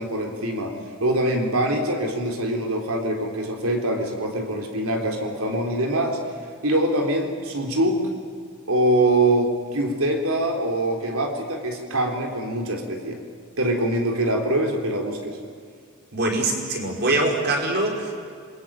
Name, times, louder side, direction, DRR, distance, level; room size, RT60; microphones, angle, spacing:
voice 1, 0.0-6.2 6.6-8.0 8.7-13.2 13.6-15.4, right 1 dB, 75° right, 3 dB, 3.8 m, -24 dB
voice 2, 16.1-18.1, right 2 dB, 50° right, 1 dB, 5.3 m, -23 dB
27.5 x 22.0 x 8.9 m, 2.2 s
head